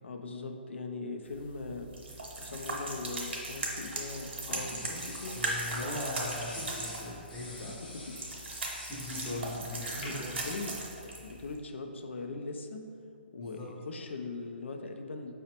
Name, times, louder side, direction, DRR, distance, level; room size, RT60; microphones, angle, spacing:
voice 1, 0.0-4.7 5.0-5.4 7.6-8.3 9.9-12.9 13.3-15.3, left 3 dB, 80° left, 5 dB, 0.4 m, -41 dB
sound 1, 1.2-11.6, right 2 dB, 70° right, 0.8 m, -38 dB
sound 2, 3.5-4.1 4.7-5.9 6.2-9.4 10.0-10.4, left 2 dB, 50° left, 0.7 m, -47 dB
voice 2, 4.5-7.8 8.9-10.4 13.4-13.7, left 1 dB, 15° left, -7 dB, 0.5 m, -40 dB
5.0 x 2.1 x 2.8 m, 2.5 s
hypercardioid pair, 170°, 6 cm